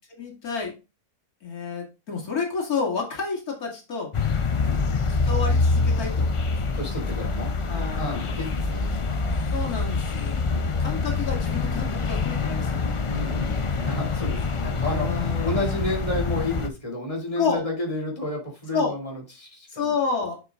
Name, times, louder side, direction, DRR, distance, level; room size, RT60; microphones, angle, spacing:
voice 1, 0.1-0.7 1.4-4.1 5.1-6.8 7.7-8.4 9.5-13.0 14.9-15.6 17.4-17.6 18.7-18.9 19.7-20.4, left 5 dB, 90° left, 0 dB, 2.8 m, -30 dB
sound 1, 4.1-16.7, left 4 dB, 50° left, 0.3 m, -25 dB
voice 2, 6.7-7.6 7.9-9.3 10.5-10.7 13.1-15.1 15.4-19.9, left 1 dB, 25° left, 1 dB, 3.0 m, -31 dB
8.2 x 7.1 x 2.4 m, 0.29 s
omnidirectional pair, 1.5 m